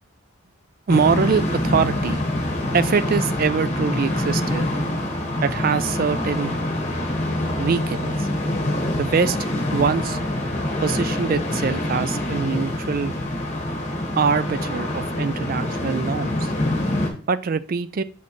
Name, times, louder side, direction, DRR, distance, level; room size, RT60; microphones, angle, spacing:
sound 1, 0.9-17.1, left 1 dB, 30° left, 1.3 m, -25 dB
voice 1, 0.9-2.2 2.7-4.7 5.4-6.5 7.6-8.3 9.0-10.2 10.8-13.1 14.2-16.5 17.3-18.0, right 5 dB, 40° right, 14 dB, 0.3 m, -23 dB
6.3 x 5.6 x 3.1 m, 0.40 s
head